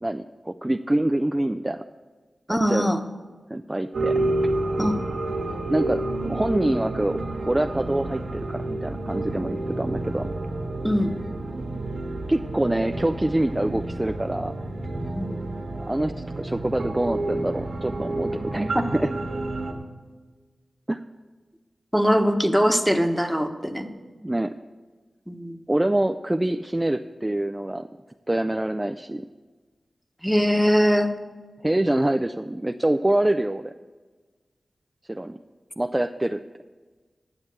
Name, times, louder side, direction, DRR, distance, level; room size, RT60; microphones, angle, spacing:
voice 1, 0.0-1.8 2.5-2.9 3.5-4.2 5.7-7.2 7.5-10.3 12.3-14.5 15.9-19.1 20.9-21.0 24.2-24.5 25.7-27.9 28.3-29.2 31.6-33.7 35.1-35.4 35.8-36.4, right 1 dB, 20° right, 7 dB, 0.4 m, -25 dB
voice 2, 2.5-3.0 4.8-5.0 10.8-11.2 15.1-15.4 18.7-18.9 21.9-23.9 25.3-25.6 30.2-31.1, equal, ahead, 6 dB, 1.1 m, -21 dB
sound 1, 3.9-19.7, right 2 dB, 90° right, 1.6 m, -29 dB
9.8 x 7.2 x 8.1 m, 1.4 s
cardioid pair, 45°, 0 cm